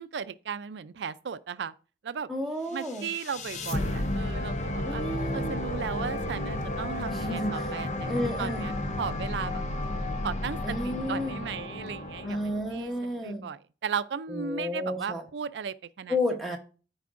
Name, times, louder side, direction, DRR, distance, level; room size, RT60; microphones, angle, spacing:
voice 1, 0.0-1.7 2.0-2.3 2.7-5.0 5.3-8.1 8.4-9.6 10.2-10.6 10.8-16.2, right 6 dB, 85° right, 0.4 m, -36 dB
voice 2, 2.3-3.1 4.8-5.6 7.1-7.7 8.1-8.7 10.6-11.3 12.2-13.4 14.3-15.2 16.1-16.6, left 1 dB, ahead, 1.0 m, -32 dB
sound 1, 2.8-13.0, left 1 dB, 40° left, 0.6 m, -32 dB
13.0 x 4.7 x 2.5 m
head